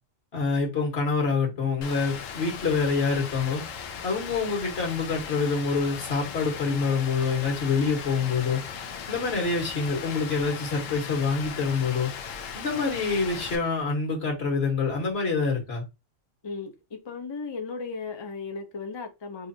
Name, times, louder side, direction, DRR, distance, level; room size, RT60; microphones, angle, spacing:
voice 1, 0.3-3.7 4.0-12.1 12.5-15.8, left 4 dB, 55° left, 1.6 m, -26 dB
Rain, 1.8-13.6, left 6 dB, 80° left, 1.0 m, -38 dB
voice 2, 17.0-19.5, left 4 dB, 35° left, 0.4 m, -36 dB
4.9 x 2.5 x 2.7 m
omnidirectional pair, 1.3 m